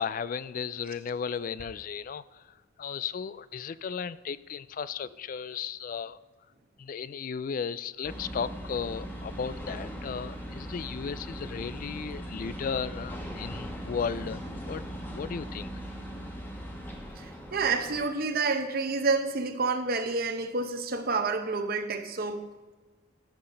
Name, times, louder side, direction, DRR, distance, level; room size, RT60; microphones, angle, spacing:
voice 1, 0.0-6.2 6.8-14.8 15.1-15.7, left 6 dB, 45° left, 0.3 m, -35 dB
sound 1, 8.0-18.0, equal, 10° left, 1.2 m, -39 dB
voice 2, 17.2-22.5, right 4 dB, 50° right, 0.8 m, -29 dB
14.5 x 5.8 x 5.1 m
head